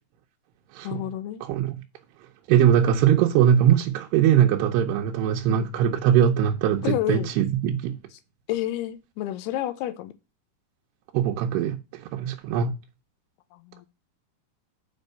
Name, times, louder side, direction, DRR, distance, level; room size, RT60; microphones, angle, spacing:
voice 1, 0.8-1.4 6.8-7.3 8.5-10.1 13.5-13.9, left 13 dB, 85° left, 2.8 m, -29 dB
voice 2, 1.4-1.8 2.5-8.0 11.1-12.7, right 9 dB, 85° right, 2.8 m, -21 dB
7.1 x 5.3 x 6.6 m
omnidirectional pair, 4.6 m